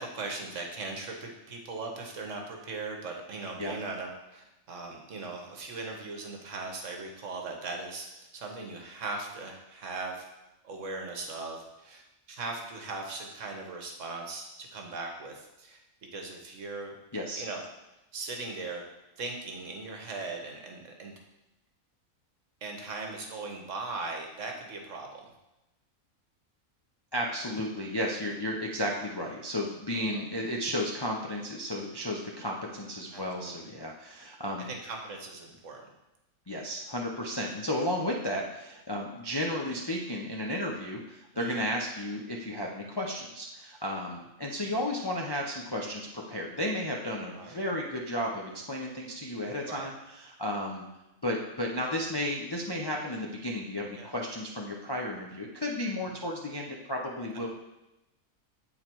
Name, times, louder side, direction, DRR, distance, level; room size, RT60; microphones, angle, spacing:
voice 1, 0.0-8.1 8.3-10.2 10.6-15.8 16.1-16.9 17.3-17.6 18.1-18.8 19.2-21.1 22.6-25.3 30.0-30.2 33.1-33.5 34.7-35.8 41.3-41.6 45.7-45.9 47.3-47.6 49.7-49.9 54.0-54.1 57.3-57.4, right 3 dB, 65° right, 2 dB, 1.3 m, -39 dB
voice 2, 17.1-17.4 27.1-34.7 36.5-50.8 51.2-57.5, left 1 dB, 30° left, -1 dB, 0.4 m, -33 dB
8.6 x 4.0 x 4.5 m, 0.95 s
omnidirectional pair, 1.4 m